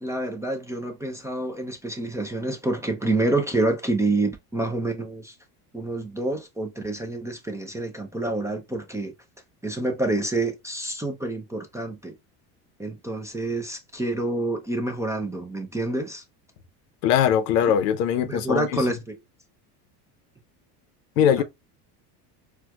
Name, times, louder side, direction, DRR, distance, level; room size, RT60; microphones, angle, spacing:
voice 1, 0.0-5.4 5.7-9.1 9.6-12.1 12.8-16.2 18.2-19.1 21.2-21.4, right 2 dB, 5° right, 0.4 m, -28 dB
voice 2, 17.0-18.9 21.2-21.4, left 9 dB, 85° left, 0.7 m, -21 dB
4.4 x 2.2 x 2.3 m
supercardioid pair, 110°, 47 cm